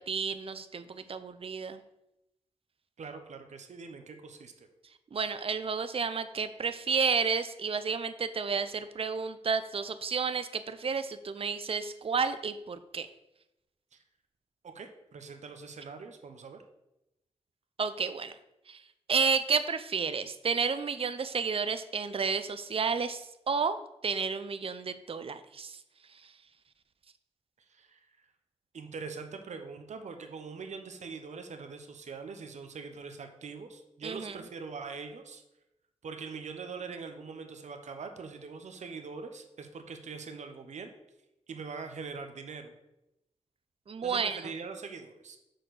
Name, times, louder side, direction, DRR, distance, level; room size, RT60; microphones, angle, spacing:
voice 1, 0.0-1.8 5.1-13.1 17.8-18.3 18.7-18.8 19.1-23.8 24.0-25.8 26.1-26.3 34.0-34.4 43.9-44.4, right 5 dB, 50° right, 11 dB, 0.6 m, -31 dB
voice 2, 3.0-4.7 13.9-14.0 14.6-16.6 27.7-28.3 28.7-35.4 36.0-40.9 41.5-42.7 44.0-45.4, right 5 dB, 75° right, 6 dB, 1.0 m, -43 dB
6.2 x 4.5 x 6.4 m, 0.88 s
cardioid pair, 65°, 12 cm